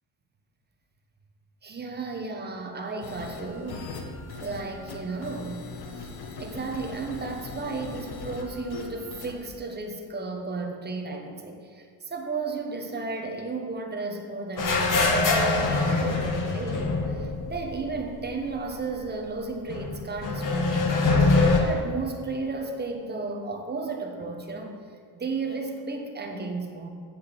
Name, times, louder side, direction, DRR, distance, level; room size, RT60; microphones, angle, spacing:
voice 1, 1.6-4.0 4.4-5.7 6.0-21.2 21.6-24.7 25.1-26.9, right 3 dB, 25° right, 3 dB, 1.1 m, -34 dB
sound 1, 3.0-9.3, left 3 dB, 70° left, 1.3 m, -40 dB
sound 2, 14.6-18.3 18.6-18.7 19.7-21.6, left 3 dB, 50° left, 1.4 m, -24 dB
7.9 x 7.9 x 6.9 m, 2.1 s
cardioid pair, 155°, 41 cm